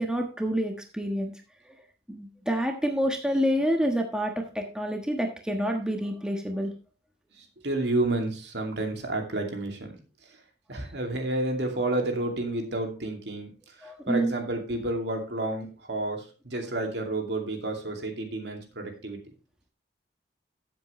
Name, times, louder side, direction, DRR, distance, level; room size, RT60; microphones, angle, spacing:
voice 1, 0.0-1.3 2.1-6.7 13.8-14.3, equal, 5° right, 2 dB, 1.3 m, -28 dB
voice 2, 7.4-9.9 10.7-13.5 13.8-19.2, right 2 dB, 75° right, 3 dB, 2.5 m, -30 dB
14.0 x 7.6 x 3.2 m, 0.33 s
head